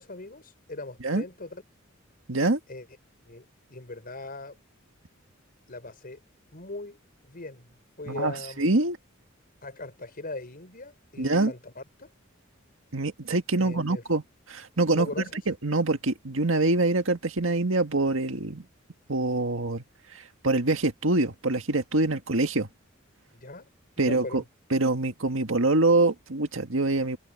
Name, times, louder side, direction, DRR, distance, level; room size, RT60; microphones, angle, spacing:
voice 1, 0.0-1.6 2.7-2.9 3.2-4.6 5.7-6.2 6.5-7.0 7.3-7.7 8.0-8.6 9.6-12.1 13.6-14.0 14.9-15.4 23.3-23.7 24.0-24.4, left 2 dB, 45° left, 5.1 m, -39 dB
voice 2, 2.3-2.6 8.1-9.0 11.2-11.5 12.9-14.2 14.5-15.1 15.5-18.7 19.1-19.8 20.1-22.7 24.0-24.4 24.7-27.2, right 2 dB, 70° right, 1.8 m, -25 dB
open air
head